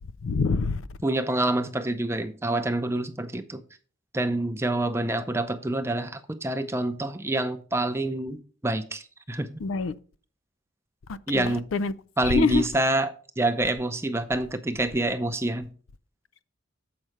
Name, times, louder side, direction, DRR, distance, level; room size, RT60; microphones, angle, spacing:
voice 1, 0.2-0.8 9.6-9.9 11.3-11.9 12.2-12.6, left 4 dB, 90° left, 0.4 m, -25 dB
voice 2, 1.0-3.6 4.1-9.6 11.3-11.7 12.2-15.7, right 2 dB, 15° right, 0.5 m, -27 dB
7.7 x 5.4 x 4.7 m
head